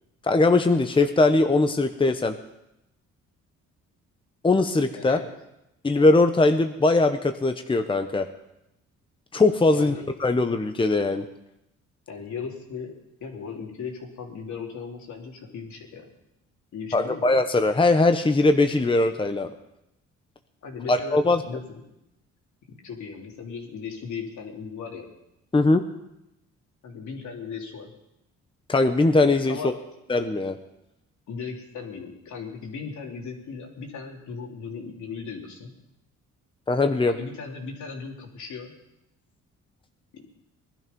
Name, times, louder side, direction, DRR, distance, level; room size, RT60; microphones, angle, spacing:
voice 1, 0.2-2.3 4.4-5.2 5.8-8.3 9.3-9.9 10.2-11.2 16.9-19.5 20.9-21.4 25.5-25.8 28.7-29.7 30.1-30.6 36.7-37.1, left 2 dB, 15° left, 7 dB, 1.0 m, -20 dB
voice 2, 4.9-5.3 9.7-10.0 12.1-12.9 13.2-16.1 16.7-17.3 20.6-21.8 22.7-25.1 26.8-27.9 29.5-29.7 31.3-35.7 37.1-38.7 40.1-40.3, left 5 dB, 70° left, 0 dB, 3.4 m, -37 dB
20.0 x 12.0 x 5.5 m, 0.88 s
cardioid pair, 90°, 30 cm